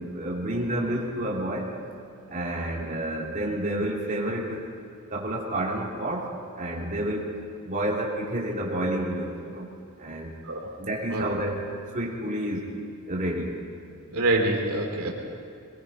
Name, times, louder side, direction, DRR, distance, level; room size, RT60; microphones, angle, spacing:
voice 1, 0.0-1.7 2.3-4.7 5.1-7.3 7.7-9.7 10.0-10.3 10.8-12.7 13.1-13.6 15.0-15.1, right 1 dB, 35° right, -4 dB, 3.1 m, -30 dB
voice 2, 11.1-11.5 14.1-15.1, right 2 dB, 75° right, 0 dB, 3.0 m, -26 dB
23.5 x 20.5 x 5.5 m, 2.5 s
head